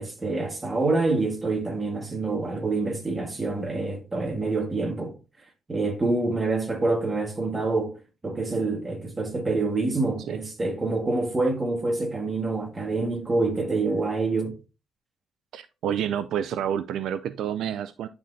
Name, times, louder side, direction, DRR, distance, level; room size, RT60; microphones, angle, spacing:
voice 1, 0.0-5.1 5.7-8.0 8.2-14.6, right 3 dB, 25° right, 1.5 m, -26 dB
voice 2, 15.5-18.1, right 9 dB, 75° right, 0.3 m, -29 dB
10.5 x 3.8 x 2.6 m
cardioid pair, 90°, 0 cm